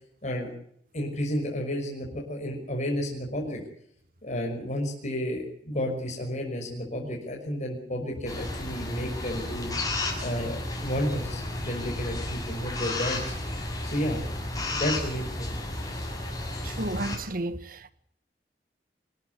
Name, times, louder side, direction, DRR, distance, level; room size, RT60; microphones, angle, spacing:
voice 1, 0.9-3.6 4.2-9.7 10.2-13.3 13.8-14.2 14.7-15.5, equal, 45° left, 5.9 m, -31 dB
sound 1, 8.3-17.2, left 1 dB, 20° left, 6.7 m, -33 dB
voice 2, 16.6-17.9, right 2 dB, 55° right, 1.4 m, -32 dB
26.0 x 13.5 x 8.2 m
head